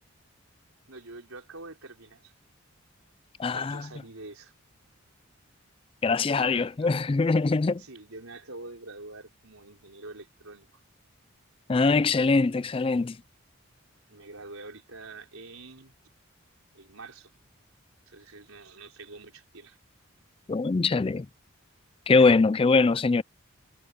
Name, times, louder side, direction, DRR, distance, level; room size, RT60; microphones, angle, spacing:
voice 1, 0.9-2.3 3.5-4.5 6.3-6.9 7.8-10.7 14.1-15.9 16.7-17.3 18.1-19.8, right 2 dB, 80° right, 4.2 m, -45 dB
voice 2, 3.4-3.8 6.0-7.8 11.7-13.2 20.5-21.3 22.1-23.2, left 4 dB, 25° left, 0.3 m, -22 dB
head